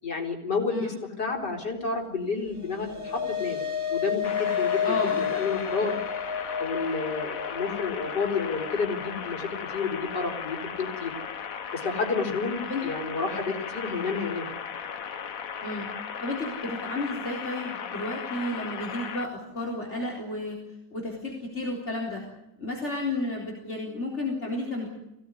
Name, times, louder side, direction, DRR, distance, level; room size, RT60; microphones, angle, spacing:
voice 1, 0.0-3.6 3.9-6.0 6.6-11.1 11.7-14.5, left 4 dB, 80° left, 1 dB, 5.0 m, -30 dB
sound 1, 2.4-11.0, left 8 dB, 45° right, 3.7 m, -32 dB
sound 2, 4.2-19.2, left 7 dB, 55° left, 1.5 m, -36 dB
voice 2, 4.8-5.3 12.7-12.8 15.6-15.9 16.2-20.6 20.9-22.2 22.6-24.9, left 2 dB, 40° left, 0 dB, 4.3 m, -32 dB
23.5 x 17.5 x 9.9 m, 0.92 s
omnidirectional pair, 1.8 m